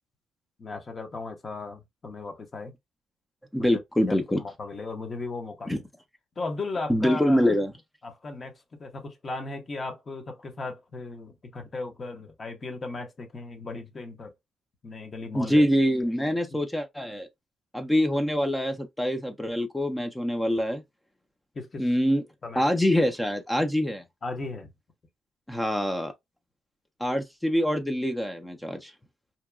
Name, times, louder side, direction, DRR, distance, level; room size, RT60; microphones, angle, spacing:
voice 1, 0.6-2.7 3.6-5.8 6.4-7.5 8.0-14.3 14.8-15.7 16.5-16.6 21.5-21.8 22.4-22.6 24.2-24.7, left 3 dB, 35° left, 0.8 m, -36 dB
voice 2, 3.5-4.4 5.7-5.8 6.9-7.7 15.3-17.3 17.7-20.8 21.8-22.2 22.6-24.0 25.5-26.1 27.0-28.9, equal, 10° left, 0.5 m, -25 dB
2.8 x 2.2 x 2.3 m
cardioid pair, 90°, 0 cm